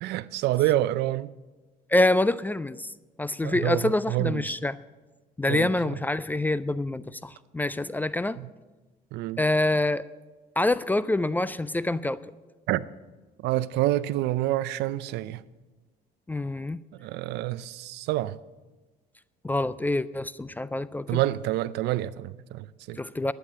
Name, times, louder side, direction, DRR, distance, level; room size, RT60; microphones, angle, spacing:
voice 1, 0.0-1.3 3.4-4.5 5.5-5.8 8.4-8.5 9.1-9.4 12.7-12.8 13.4-15.4 17.0-18.4 21.1-23.0, right 15 dB, 80° right, 0.5 m, -27 dB
voice 2, 1.9-2.9 3.2-4.8 5.4-8.4 9.4-10.0 10.6-12.3 16.3-16.8 19.4-21.2 23.0-23.3, left 2 dB, 10° left, 0.3 m, -26 dB
11.5 x 9.1 x 6.5 m
cardioid pair, 110°, 17 cm